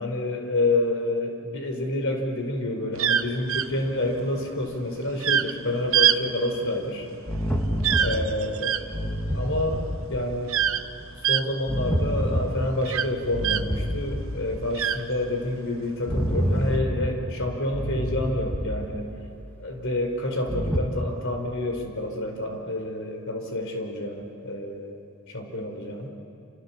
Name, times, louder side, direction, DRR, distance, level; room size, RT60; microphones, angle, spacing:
voice 1, 0.0-7.1 8.0-9.1 9.3-10.5 11.3-19.1 19.6-25.0 25.3-26.1, left 1 dB, 65° left, 4 dB, 4.6 m, -28 dB
sound 1, 2.9-13.9 14.2-15.6 16.3-16.7, right 9 dB, 75° right, 1.0 m, -26 dB
sound 2, 7.3-8.5 8.9-10.3 11.7-12.9 13.3-14.6 16.1-17.3 17.7-19.0 20.5-20.8, equal, 10° left, 2.3 m, -28 dB
28.5 x 28.0 x 7.4 m, 2.6 s
head